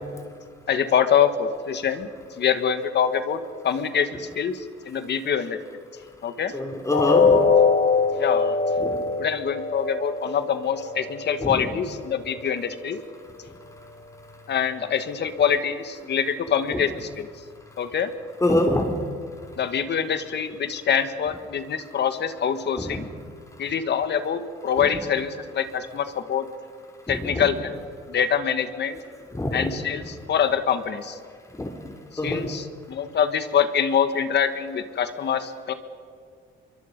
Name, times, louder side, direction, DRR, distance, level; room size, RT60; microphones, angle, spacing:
voice 1, 0.7-2.1 2.4-5.6 6.2-6.5 8.1-8.6 9.2-13.0 14.5-17.3 17.8-18.1 19.6-23.1 23.6-26.4 27.1-27.8 28.1-29.0 29.5-31.2 32.2-35.7, left 7 dB, 60° left, 10 dB, 1.7 m, -25 dB
voice 2, 6.5-7.4 8.8-9.0 11.4-11.5 18.4-18.9 27.4-27.5 29.3-29.6 31.6-31.7 32.2-32.5, left 1 dB, 15° left, 2 dB, 3.1 m, -23 dB
sound 1, 6.9-12.9 13.3-13.5 13.9-14.0, left 5 dB, 80° left, 2.3 m, -23 dB
26.0 x 23.5 x 5.4 m, 2.1 s
cardioid pair, 90°, 20 cm